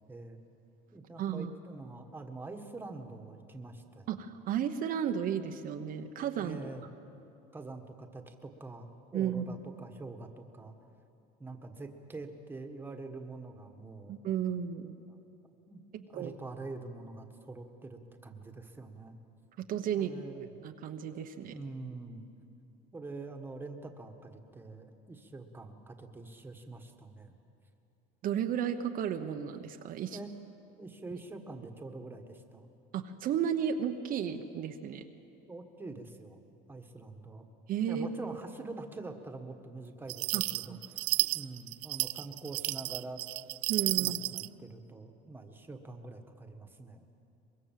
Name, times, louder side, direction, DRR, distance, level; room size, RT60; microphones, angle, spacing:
voice 1, 0.1-0.4 0.9-4.1 6.4-6.8 7.5-10.7 11.4-14.1 15.1-15.4 15.7-19.2 20.0-20.5 21.5-22.3 22.9-27.3 30.1-30.3 30.8-32.7 35.5-36.4 36.7-37.5 37.9-41.1 41.3-43.2 44.0-47.0, right 3 dB, 10° right, 5 dB, 1.6 m, -45 dB
voice 2, 1.2-1.5 4.1-6.6 9.1-9.6 14.1-15.0 15.9-16.3 19.7-20.1 20.6-21.5 28.2-30.2 32.9-35.0 37.7-38.1 40.3-40.4 40.7-40.8 43.7-44.2, right 9 dB, 45° right, 6 dB, 1.0 m, -33 dB
sound 1, 40.1-44.5, right 25 dB, 80° right, 0.4 m, -32 dB
24.0 x 22.0 x 7.6 m, 2.8 s
cardioid pair, 145°, 20 cm